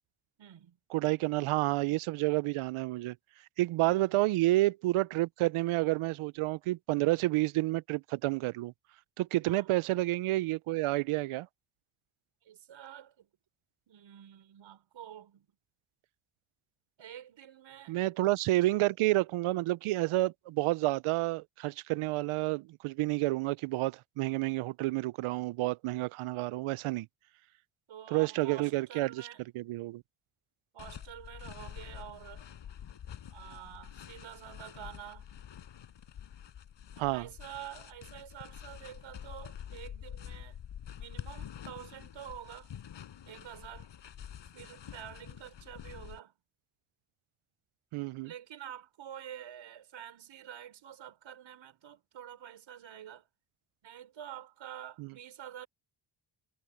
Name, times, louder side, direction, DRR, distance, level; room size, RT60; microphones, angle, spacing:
voice 1, 0.4-0.8 3.8-4.3 9.4-9.7 12.4-13.3 13.9-15.5 17.0-18.0 27.9-29.4 30.7-32.5 33.3-35.3 37.1-40.6 41.0-42.7 43.2-43.9 44.5-46.4 48.2-53.3 53.8-55.7, right 10 dB, 65° right, 5.1 m, -48 dB
voice 2, 0.9-3.2 3.6-8.7 9.2-11.5 17.9-27.1 28.1-29.3 29.5-30.0 37.0-37.3 47.9-48.3 55.0-55.1, right 18 dB, 90° right, 0.6 m, -29 dB
sound 1, 30.8-46.2, left 9 dB, 60° left, 7.8 m, -47 dB
cardioid pair, 130°, 48 cm